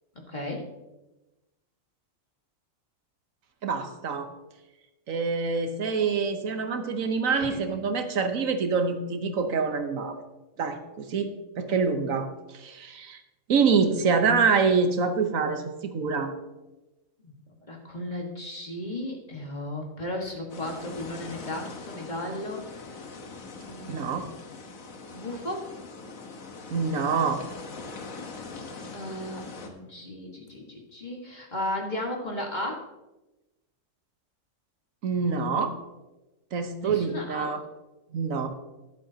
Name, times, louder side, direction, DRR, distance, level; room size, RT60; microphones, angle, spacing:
voice 1, 0.3-0.7 7.3-7.9 17.2-22.9 23.6-24.2 25.1-25.7 28.9-32.8 36.8-37.6, left 1 dB, 35° left, 0 dB, 1.7 m, -35 dB
voice 2, 3.6-4.3 5.1-10.2 10.6-13.2 13.5-16.3 23.9-24.2 26.7-27.4 35.0-35.7 36.5-37.6 38.1-38.5, right 5 dB, 80° right, 7 dB, 1.4 m, -26 dB
sound 1, 20.5-29.7, left 4 dB, 85° left, 1.6 m, -42 dB
12.5 x 11.5 x 2.8 m, 1.1 s
omnidirectional pair, 1.4 m